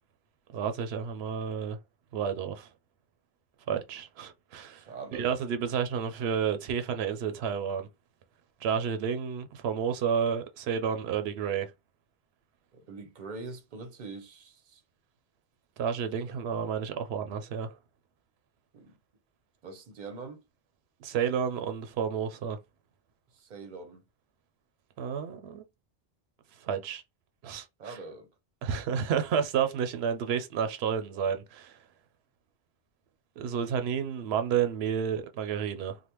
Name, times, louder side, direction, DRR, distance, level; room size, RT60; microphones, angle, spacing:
voice 1, 0.5-1.8 2.1-2.7 3.7-4.8 5.1-7.9 8.6-11.7 15.8-17.8 21.0-22.6 25.0-25.6 26.6-27.0 27.4-28.0 28.6-31.8 33.4-36.0, right 7 dB, 90° right, 0.8 m, -30 dB
voice 2, 4.7-5.3 12.7-14.8 16.3-16.4 18.7-19.0 19.6-20.4 23.3-24.0 27.8-28.3, right 4 dB, 50° right, 0.8 m, -43 dB
3.3 x 2.1 x 2.9 m
omnidirectional pair, 1.0 m